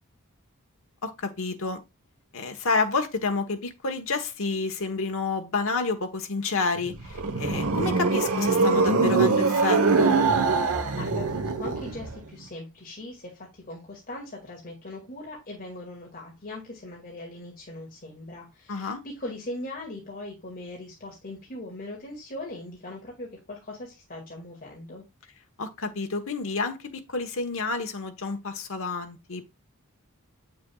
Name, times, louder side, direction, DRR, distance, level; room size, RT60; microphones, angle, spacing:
voice 1, 1.0-1.8 2.3-10.2 18.7-19.0 25.6-29.5, left 3 dB, 65° left, 1.2 m, -29 dB
sound 1, 6.8-12.2, right 3 dB, 80° right, 1.1 m, -23 dB
voice 2, 10.6-25.0, left 1 dB, 45° left, 2.2 m, -40 dB
8.0 x 6.7 x 2.3 m
head